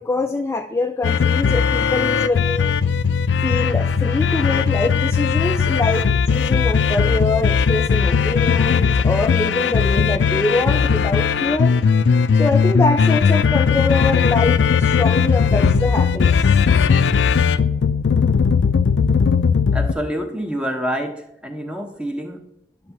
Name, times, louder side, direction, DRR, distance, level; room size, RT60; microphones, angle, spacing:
voice 1, 0.0-2.8 3.4-11.8 12.3-16.6, left 2 dB, 15° left, 6 dB, 0.3 m, -24 dB
sound 1, 1.0-19.9, left 6 dB, 85° left, 0.4 m, -18 dB
voice 2, 19.7-22.4, equal, 5° right, 4 dB, 0.9 m, -27 dB
10.0 x 3.6 x 7.0 m, 0.82 s
head